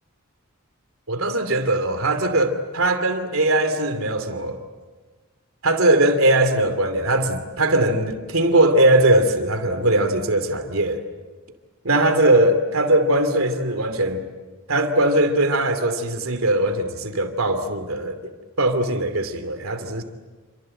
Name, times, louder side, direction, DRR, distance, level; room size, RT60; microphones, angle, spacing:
voice 1, 1.1-4.6 5.6-11.0 11.8-14.2 14.7-18.3 18.6-20.0, right 1 dB, 80° right, 8 dB, 2.8 m, -20 dB
28.5 x 26.5 x 7.9 m, 1.3 s
head